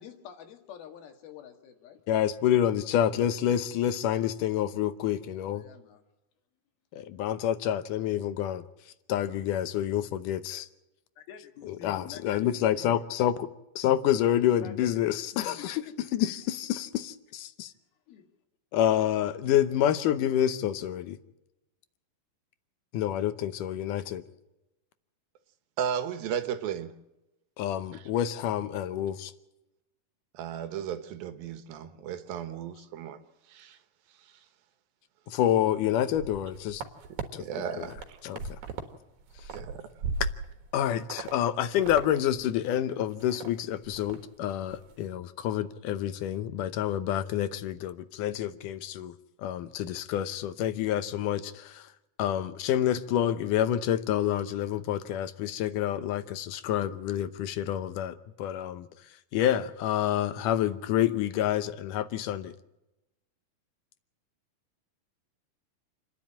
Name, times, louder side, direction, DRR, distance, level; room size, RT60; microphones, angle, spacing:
voice 1, 0.0-2.0 5.5-6.0 11.2-12.5 12.8-13.1 14.6-15.7 18.1-18.3, left 8 dB, 90° left, 3.8 m, -47 dB
voice 2, 2.1-5.6 6.9-8.6 9.1-10.7 11.6-13.5 13.8-15.9 16.1-17.7 18.7-21.2 22.9-24.2 27.6-29.3 35.3-36.8 37.3-37.4 37.8-37.9 38.2-38.6 40.7-51.9 52.2-58.9 59.3-62.5, left 11 dB, 75° left, 2.2 m, -28 dB
voice 3, 25.8-26.9 27.9-28.0 30.3-33.2 33.5-33.8 37.1-38.2 39.5-39.9, right 8 dB, 80° right, 3.0 m, -35 dB
sound 1, 36.1-37.3 37.7-38.9 39.2-40.7 41.1-41.3 41.6-42.1 42.4-42.5 42.9-43.5 43.8-44.2 44.5-44.8, right 4 dB, 60° right, 2.7 m, -37 dB
28.5 x 10.5 x 8.7 m
omnidirectional pair, 4.2 m